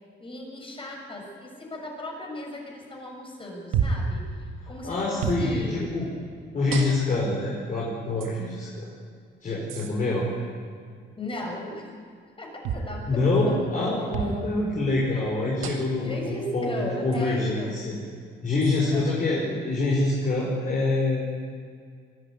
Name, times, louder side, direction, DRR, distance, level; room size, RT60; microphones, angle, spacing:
voice 1, 0.2-5.8 11.2-11.9 12.4-13.1 13.4-14.3 16.0-17.8 18.8-19.4, left 1 dB, 25° left, 0 dB, 6.6 m, -37 dB
sound 1, 3.7-4.1 5.2-5.5 6.7-7.2 8.2-8.3 9.7-9.9 12.6-12.9 14.1-14.4 15.6-16.0 17.1-17.2 18.6-18.8, right 6 dB, 85° right, 2.1 m, -29 dB
voice 2, 4.6-6.1 6.5-8.9 9.4-10.3 13.1-16.7 17.0-18.0 18.4-21.2, left 2 dB, 40° left, -4 dB, 5.0 m, -26 dB
24.5 x 11.0 x 9.7 m, 2.1 s
cardioid pair, 90°, 20 cm